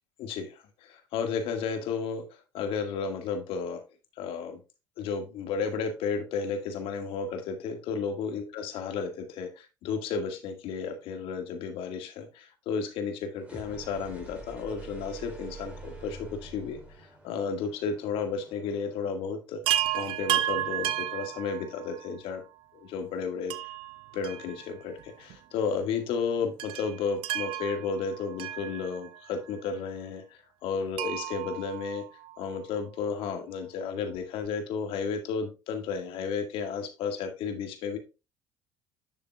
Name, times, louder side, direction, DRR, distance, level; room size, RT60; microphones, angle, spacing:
voice 1, 0.2-3.8 4.2-4.6 5.0-19.6 19.9-22.4 22.9-23.5 24.1-32.0 32.4-38.0, left 5 dB, 60° left, 6 dB, 1.9 m, -33 dB
sound 1, 13.4-19.2, right 2 dB, 10° right, 3.7 m, -46 dB
Chime, 19.7-22.1 23.5-25.0 25.3-25.4 26.6-29.3 31.0-32.6 34.1-34.2 34.5-34.6, right 13 dB, 60° right, 0.8 m, -33 dB
11.0 x 6.6 x 2.4 m, 0.28 s
hypercardioid pair, 60°, 10 cm